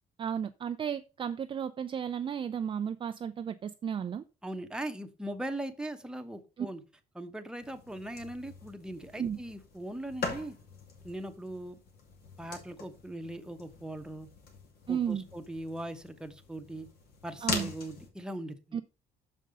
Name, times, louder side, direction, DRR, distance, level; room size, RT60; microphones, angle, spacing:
voice 1, 0.2-4.2 6.6-6.7 9.2-9.4 14.9-15.2 17.4-17.7 18.7-18.8, right 8 dB, 30° right, 0.4 m, -33 dB
voice 2, 4.4-6.8 7.1-10.6 11.0-11.8 12.4-14.3 14.9-16.9 17.2-18.8, right 1 dB, 5° right, 1.0 m, -40 dB
sound 1, 7.6-18.1, left 4 dB, 70° left, 2.5 m, -42 dB
6.5 x 5.4 x 5.1 m
cardioid pair, 110°, 17 cm